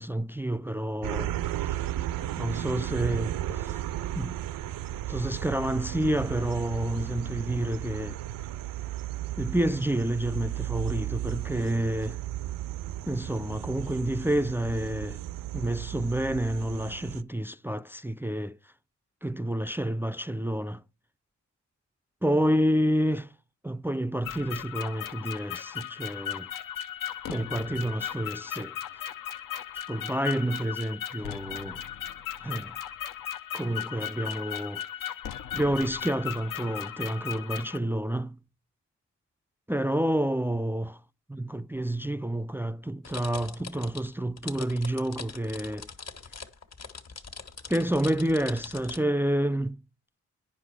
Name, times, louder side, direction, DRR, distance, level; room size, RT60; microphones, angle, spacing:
voice 1, 0.0-1.4 1.6-1.8 2.4-3.8 4.1-4.4 5.1-8.2 9.4-12.2 13.1-15.2 15.5-18.6 19.2-20.8 22.2-23.3 23.6-26.5 27.3-28.7 29.9-31.8 32.4-32.8 33.5-35.1 35.5-38.4 39.7-41.0 41.3-45.9 47.7-49.8, right 1 dB, 5° right, 0.4 m, -29 dB
sound 1, 1.0-17.2, right 13 dB, 80° right, 0.5 m, -34 dB
sound 2, 24.2-37.8, left 10 dB, 75° left, 0.7 m, -37 dB
sound 3, 43.0-49.0, left 5 dB, 50° left, 1.5 m, -42 dB
9.5 x 5.5 x 4.9 m
supercardioid pair, 45°, 33 cm